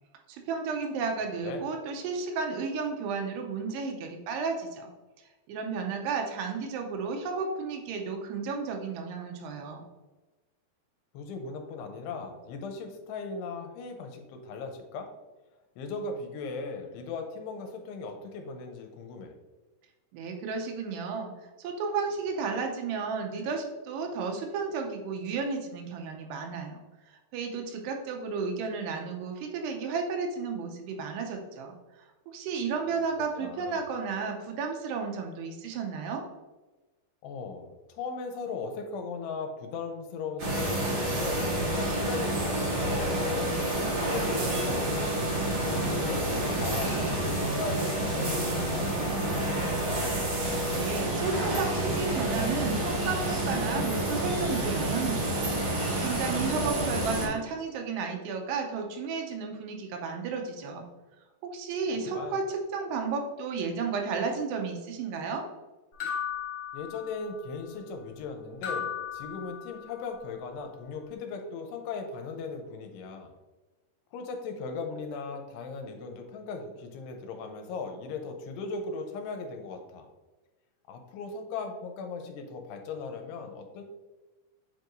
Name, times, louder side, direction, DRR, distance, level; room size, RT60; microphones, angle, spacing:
voice 1, 0.3-4.9 5.5-9.8 20.1-21.3 21.6-26.8 27.1-31.8 32.3-36.2 50.8-55.5 55.7-60.8 61.4-65.4, right 5 dB, 85° right, 3 dB, 2.7 m, -33 dB
voice 2, 11.1-15.1 15.8-19.3 33.4-33.9 37.2-41.5 41.9-45.3 46.0-49.8 62.0-62.4 66.7-73.3 74.1-80.1 80.9-83.8, left 4 dB, 85° left, 5 dB, 2.7 m, -38 dB
sound 1, 40.4-57.3, right 1 dB, 65° right, 1.3 m, -29 dB
sound 2, 66.0-67.5 68.6-70.1, left 8 dB, 65° left, 1.6 m, -36 dB
8.3 x 4.6 x 2.6 m, 1.2 s
omnidirectional pair, 4.9 m